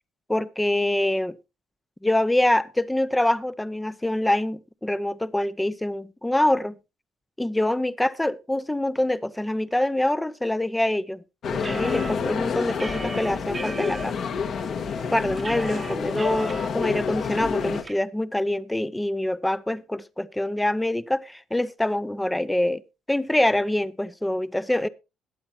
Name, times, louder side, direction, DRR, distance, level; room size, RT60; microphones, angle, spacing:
voice 1, 0.3-1.4 2.0-6.7 7.4-11.2 11.5-14.1 15.1-22.8 23.1-24.9, left 1 dB, 5° left, 0.7 m, -25 dB
sound 1, 11.4-17.8, left 6 dB, 55° left, 1.5 m, -28 dB
sound 2, 11.6-14.0 14.6-14.7 15.0-16.7 17.0-17.1 17.4-17.9, right 3 dB, 20° right, 1.0 m, -37 dB
21.0 x 8.6 x 2.9 m
cardioid pair, 125°, 0 cm